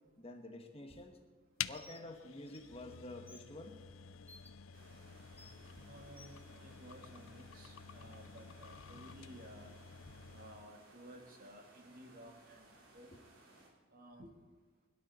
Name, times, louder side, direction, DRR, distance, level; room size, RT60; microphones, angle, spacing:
voice 1, 0.2-1.2 1.7-3.8 13.1-13.2, left 2 dB, 30° left, 4 dB, 1.3 m, -49 dB
sound 1, 1.6-10.7, left 9 dB, 85° left, 0.5 m, -49 dB
Bird, 1.7-2.0 2.5-2.6 3.3-3.4 4.3-4.5 5.4-5.5 6.2-6.3, left 3 dB, 10° left, 1.1 m, -57 dB
sound 2, 4.7-13.7, right 2 dB, 90° right, 3.4 m, -62 dB
voice 2, 5.9-9.7 10.3-13.1 13.9-14.3, right 1 dB, 50° right, 2 dB, 2.0 m, -55 dB
21.5 x 12.0 x 4.3 m, 1.3 s
head